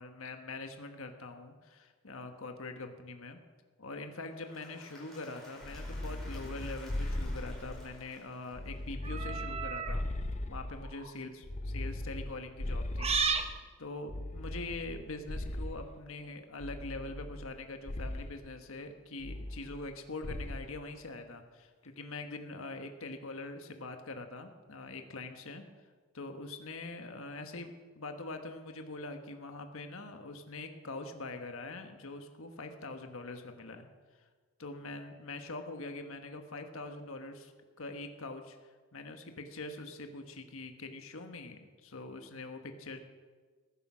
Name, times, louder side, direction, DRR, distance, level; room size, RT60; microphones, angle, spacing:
voice 1, 0.0-3.4 3.8-10.0 10.5-11.3 11.7-13.2 13.8-25.6 26.1-33.9 34.6-37.5 37.8-43.0, left 2 dB, 70° left, 6 dB, 1.3 m, -43 dB
Applause / Crowd, 4.2-9.2, left 1 dB, ahead, 4.7 m, -55 dB
sound 1, 5.6-8.1 8.5-11.0 11.4-13.6 14.1-16.0 16.6-17.6 17.9-18.4 19.2-20.0 20.2-20.7, left 1 dB, 30° left, 0.7 m, -38 dB
sound 2, 9.0-10.0 10.8-11.1 13.0-13.5, right 5 dB, 30° right, 0.9 m, -32 dB
20.0 x 10.0 x 6.1 m, 1.4 s
head